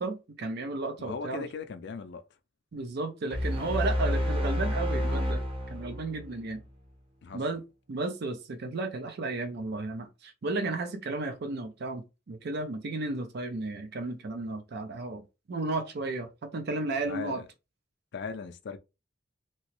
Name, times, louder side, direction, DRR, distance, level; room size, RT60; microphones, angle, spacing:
voice 1, 0.0-1.5 2.7-5.4 5.7-6.6 7.3-7.6 7.9-17.4, right 2 dB, 55° right, 0.5 m, -33 dB
voice 2, 1.1-2.2 7.2-7.4 17.1-17.4 18.1-18.8, left 5 dB, 60° left, 0.4 m, -38 dB
sound 1, 3.3-6.6, equal, 25° right, 0.8 m, -29 dB
3.0 x 2.8 x 3.0 m
head